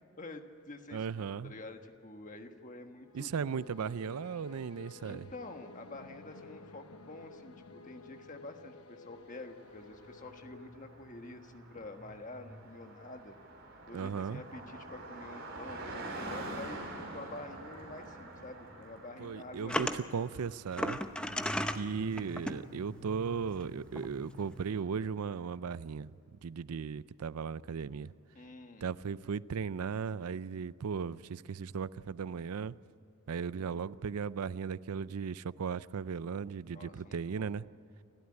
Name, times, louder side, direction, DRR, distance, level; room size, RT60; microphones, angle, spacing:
voice 1, 0.0-3.7 5.0-7.6 7.8-13.4 13.9-20.0 22.4-22.6 28.3-28.9 33.5-33.8 36.7-37.5, left 2 dB, 35° left, 1.5 m, -48 dB
voice 2, 0.9-1.5 3.1-5.2 13.9-14.4 19.2-21.0 21.8-26.1 26.4-28.1 28.8-32.7 33.3-37.7, right 6 dB, 85° right, 0.5 m, -37 dB
sound 1, 3.0-11.5, left 4 dB, 80° left, 1.2 m, -54 dB
Car passing by, 9.4-25.5, right 1 dB, 55° right, 4.8 m, -47 dB
sound 2, 19.7-20.0 20.7-21.8 22.2-22.6 23.6-23.7 24.0-24.1, left 1 dB, 5° left, 0.7 m, -33 dB
29.0 x 13.0 x 9.8 m
head